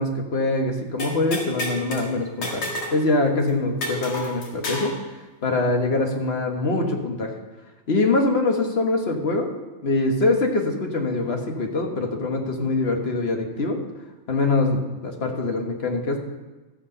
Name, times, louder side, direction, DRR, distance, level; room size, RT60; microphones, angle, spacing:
voice 1, 0.0-2.6 2.9-4.9 5.4-7.3 7.9-9.5 9.8-13.8 14.3-16.2, left 2 dB, 35° left, 3 dB, 1.3 m, -23 dB
sound 1, 1.0-2.0 2.4-3.0 3.2-3.3 3.8-4.9, left 1 dB, 85° left, 2.8 m, -30 dB
13.0 x 8.4 x 5.5 m, 1.2 s
omnidirectional pair, 2.2 m